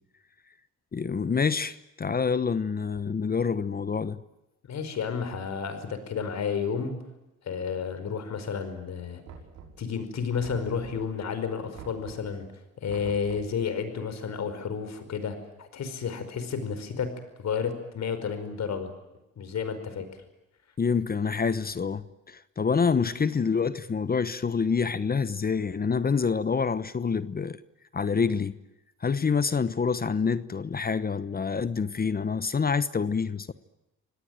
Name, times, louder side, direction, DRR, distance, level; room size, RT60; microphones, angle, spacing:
voice 1, 0.9-4.2 20.8-27.6 27.9-28.6 29.0-33.5, left 5 dB, 30° left, 1.0 m, -27 dB
voice 2, 4.7-7.0 7.4-9.2 9.8-12.5 12.8-17.1 17.4-18.9 19.4-20.1, left 6 dB, 60° left, 5.1 m, -31 dB
Knock, 9.3-10.0 10.4-11.2 11.7-12.4 12.9-13.6, right 6 dB, 90° right, 6.1 m, -46 dB
27.0 x 18.5 x 9.0 m
cardioid pair, 90°, 30 cm